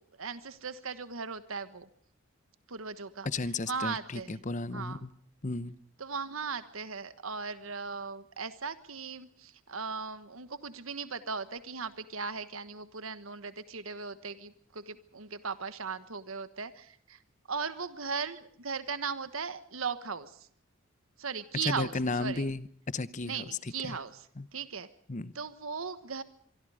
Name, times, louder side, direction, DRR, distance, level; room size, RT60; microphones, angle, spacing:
voice 1, 0.0-1.9 2.7-4.4 4.7-5.0 6.0-17.2 17.5-20.5 21.2-22.5 23.2-24.3 24.5-24.9 25.3-26.2, right 5 dB, 90° right, 1.4 m, -38 dB
voice 2, 3.2-5.1 5.4-5.7 21.6-24.0 24.4-24.5 25.1-25.3, left 3 dB, 35° left, 0.9 m, -34 dB
25.5 x 23.5 x 5.0 m
head